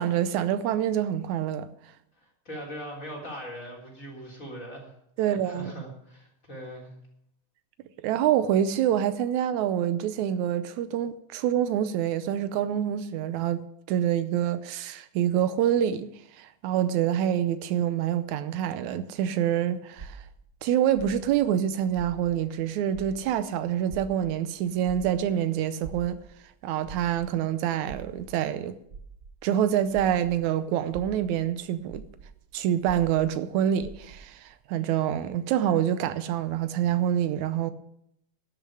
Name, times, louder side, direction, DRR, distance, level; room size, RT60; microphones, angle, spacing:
voice 1, 0.0-1.7 5.2-5.7 8.0-13.6 13.9-16.1 16.4-20.2 20.6-26.2 26.6-28.8 29.4-32.0 32.5-37.7, right 10 dB, 85° right, 2.1 m, -26 dB
voice 2, 2.5-6.9, right 1 dB, 25° left, 3.8 m, -40 dB
sound 1, 20.0-22.6 22.9-30.4 30.8-34.3, right 5 dB, 55° right, 1.0 m, -46 dB
12.5 x 6.8 x 9.9 m
omnidirectional pair, 3.3 m